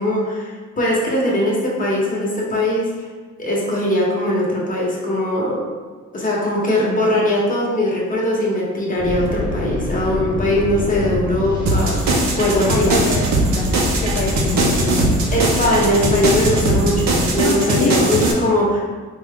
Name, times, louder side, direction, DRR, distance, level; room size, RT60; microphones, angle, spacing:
voice 1, 0.0-2.9 3.4-5.6 6.1-12.9 15.3-18.9, left 1 dB, 25° left, -4 dB, 1.1 m, -20 dB
sound 1, 9.0-17.4, left 1 dB, 15° right, 1.1 m, -26 dB
sound 2, 11.7-18.3, right 2 dB, 65° right, 0.7 m, -20 dB
voice 2, 12.7-13.2 13.5-15.1 17.4-17.9, left 4 dB, 80° left, -1 dB, 0.5 m, -25 dB
4.0 x 2.3 x 3.6 m, 1.4 s
cardioid pair, 90°, 30 cm